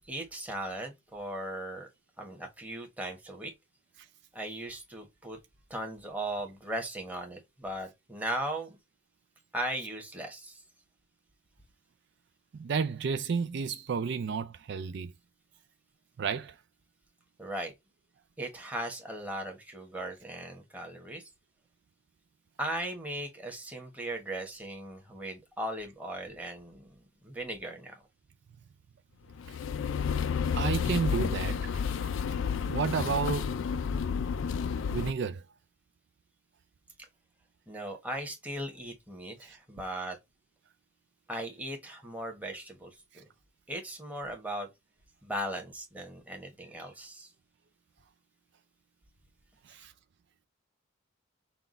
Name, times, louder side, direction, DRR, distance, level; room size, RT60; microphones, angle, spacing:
voice 1, 0.0-1.9 2.2-3.5 4.3-5.4 5.7-8.8 9.5-10.6 17.4-17.7 18.4-21.2 22.6-28.0 37.7-40.2 41.3-43.2 43.7-44.7 45.2-47.3, right 1 dB, 10° right, 1.2 m, -38 dB
voice 2, 12.6-15.1 16.2-16.5 30.5-32.3 32.7-33.5 34.9-35.4 49.7-49.9, right 5 dB, 60° right, 0.4 m, -31 dB
sound 1, 29.3-35.1, left 6 dB, 70° left, 0.4 m, -31 dB
5.8 x 2.3 x 3.8 m
head